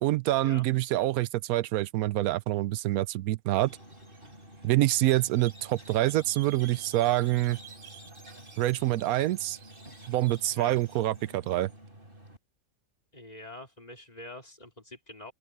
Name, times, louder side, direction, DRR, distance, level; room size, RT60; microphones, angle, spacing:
voice 1, 0.0-3.8 4.6-7.6 8.6-9.6 10.1-11.7, right 15 dB, 85° right, 1.1 m, -26 dB
Squeak, 3.6-12.4, right 2 dB, 40° right, 6.3 m, -49 dB
voice 2, 10.4-10.8 13.1-15.3, left 1 dB, 25° left, 3.5 m, -45 dB
open air
omnidirectional pair, 1.5 m